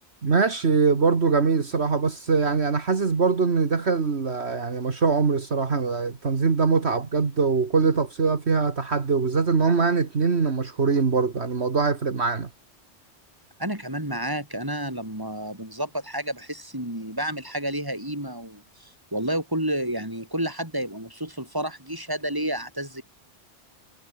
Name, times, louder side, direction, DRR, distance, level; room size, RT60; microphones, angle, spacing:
voice 1, 0.2-12.5, right 4 dB, 65° right, 2.1 m, -22 dB
voice 2, 13.6-23.0, right 1 dB, 20° right, 6.1 m, -30 dB
omnidirectional pair, 1.2 m